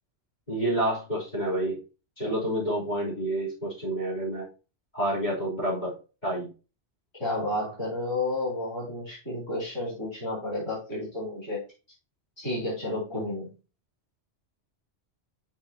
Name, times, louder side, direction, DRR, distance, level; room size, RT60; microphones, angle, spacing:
voice 1, 0.5-1.8 2.2-4.5 4.9-5.9 6.2-6.5 13.1-13.2, right 1 dB, 40° left, -7 dB, 3.6 m, -28 dB
voice 2, 7.1-11.6 12.4-13.5, left 2 dB, 25° left, -7 dB, 3.2 m, -31 dB
8.0 x 6.0 x 2.8 m, 0.33 s
omnidirectional pair, 1.1 m